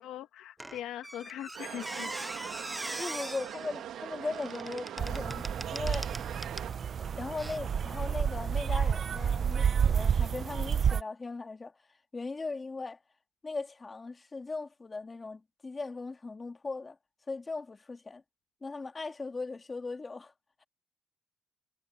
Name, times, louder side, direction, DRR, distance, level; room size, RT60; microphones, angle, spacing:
voice 1, 0.0-2.2, left 11 dB, 85° left, 2.0 m, -41 dB
Squeak, 0.6-6.8 7.4-7.6, right 1 dB, 10° right, 0.6 m, -42 dB
sound 1, 1.5-6.7, right 11 dB, 80° right, 2.3 m, -42 dB
voice 2, 2.9-5.4 5.7-6.1 7.2-11.8 12.1-13.0 13.4-17.0 17.3-18.2 18.6-20.3, left 3 dB, 25° left, 2.7 m, -38 dB
sound 2, 5.0-11.0, right 7 dB, 50° right, 0.7 m, -30 dB
cardioid pair, 90°, 0 cm